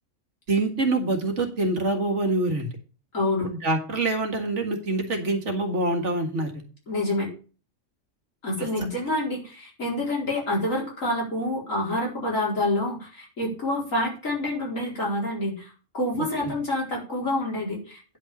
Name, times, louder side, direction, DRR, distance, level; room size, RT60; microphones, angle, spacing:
voice 1, 0.5-2.7 3.4-6.7 16.4-16.5, right 2 dB, 65° right, 5 dB, 2.2 m, -25 dB
voice 2, 3.1-3.5 6.9-7.3 8.4-18.2, left 1 dB, 85° left, -3 dB, 5.0 m, -27 dB
10.0 x 5.5 x 7.1 m, 0.37 s
omnidirectional pair, 1.3 m